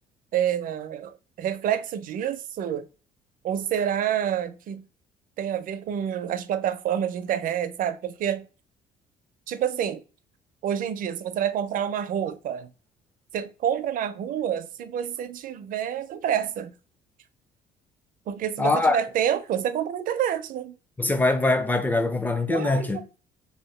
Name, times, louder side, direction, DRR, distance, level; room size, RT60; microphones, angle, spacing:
voice 1, 0.3-2.9 3.4-4.8 5.4-8.5 9.5-10.0 10.6-12.7 13.3-16.7 18.3-20.7 22.5-23.0, right 9 dB, 55° right, 0.4 m, -28 dB
voice 2, 18.6-19.0 21.0-23.0, left 2 dB, 10° left, 0.4 m, -23 dB
2.8 x 2.5 x 3.2 m
cardioid pair, 110°, 17 cm